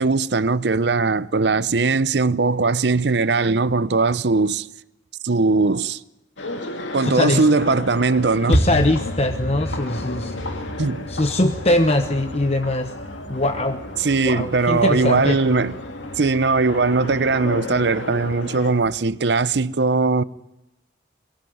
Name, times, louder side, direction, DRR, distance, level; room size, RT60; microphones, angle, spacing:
voice 1, 0.0-4.7 5.2-6.0 6.9-8.6 10.8-11.1 14.0-15.7 16.2-20.2, right 3 dB, 65° right, 0.7 m, -20 dB
sound 1, 6.4-18.7, left 2 dB, 90° left, 2.5 m, -34 dB
voice 2, 7.0-7.4 8.5-10.6 11.1-12.9 13.3-13.8 14.3-15.4, left 1 dB, 35° left, 1.0 m, -22 dB
sound 2, 7.7-19.0, equal, 65° left, 3.0 m, -31 dB
23.0 x 18.5 x 9.4 m
head